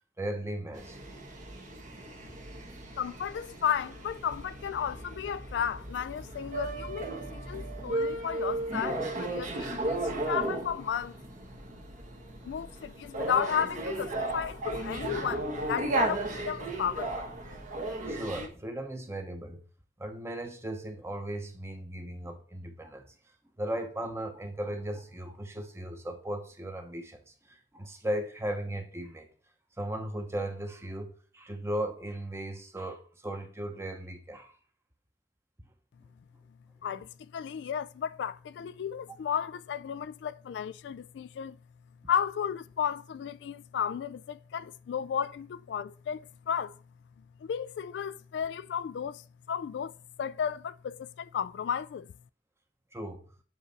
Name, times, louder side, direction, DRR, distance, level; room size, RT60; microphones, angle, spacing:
voice 1, 0.2-1.0 18.0-19.6 20.0-23.2 23.6-29.3 29.8-34.6 52.9-53.2, right 1 dB, 15° right, 0.9 m, -37 dB
sound 1, 0.7-18.5, right 2 dB, 45° right, 1.2 m, -35 dB
voice 2, 3.0-11.2 12.4-17.3 36.8-41.6 42.1-46.8 47.4-52.1, left 8 dB, 80° left, 0.3 m, -34 dB
7.4 x 4.1 x 4.0 m
head